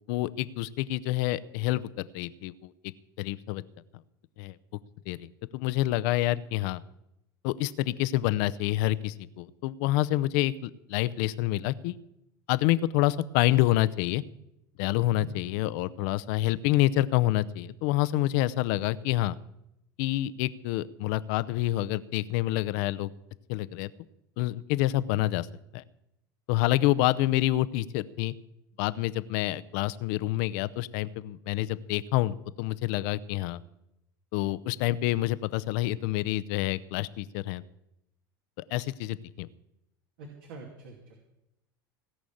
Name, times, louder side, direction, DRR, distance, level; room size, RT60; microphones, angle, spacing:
voice 1, 0.1-1.9 2.1-2.7 3.2-3.6 4.4-4.6 5.1-5.3 5.5-6.8 7.4-12.0 12.5-14.2 14.8-19.3 20.0-23.1 23.5-23.9 24.4-25.5 25.7-25.8 26.5-28.3 28.8-33.6 34.3-37.6 38.7-39.5, left 15 dB, 60° left, 16 dB, 0.7 m, -27 dB
voice 2, 40.2-41.1, right 2 dB, 70° right, 1 dB, 2.7 m, -44 dB
17.5 x 6.3 x 8.7 m, 0.86 s
hypercardioid pair, 90°, 12 cm